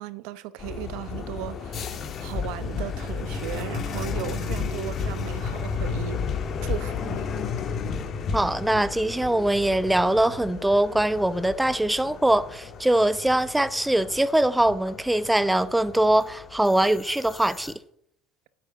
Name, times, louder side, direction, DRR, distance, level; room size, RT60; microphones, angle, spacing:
voice 1, 0.0-6.2 6.6-7.3, right 14 dB, 70° right, 0.8 m, -36 dB
sound 1, 0.6-17.7, left 5 dB, 45° left, 1.9 m, -33 dB
voice 2, 8.3-17.7, right 1 dB, 5° right, 0.8 m, -22 dB
10.0 x 7.9 x 8.1 m
hypercardioid pair, 75°, 0 cm